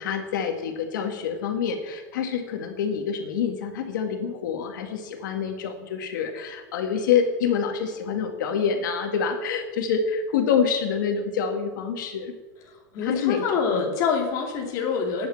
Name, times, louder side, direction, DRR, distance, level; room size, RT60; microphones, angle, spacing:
voice 1, 0.0-12.3 13.0-13.5, left 7 dB, 90° left, 5 dB, 2.0 m, -26 dB
voice 2, 12.7-15.3, left 6 dB, 35° left, 0 dB, 2.7 m, -26 dB
11.0 x 8.8 x 9.0 m, 1.2 s
supercardioid pair, 170°, 10 cm